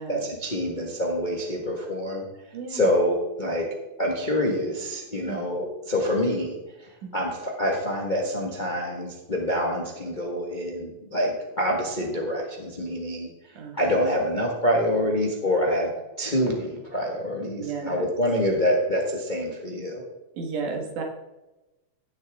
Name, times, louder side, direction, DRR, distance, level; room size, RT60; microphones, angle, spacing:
voice 1, 0.0-2.3 2.7-3.7 4.0-13.3 13.7-15.9 16.2-20.0, left 1 dB, 45° left, -1 dB, 0.6 m, -26 dB
voice 2, 2.5-2.9 5.2-5.5 7.0-7.1 13.6-13.8 17.6-18.0 20.3-21.0, right 5 dB, 80° right, 1 dB, 3.2 m, -33 dB
16.0 x 7.1 x 3.6 m, 1.0 s
omnidirectional pair, 3.5 m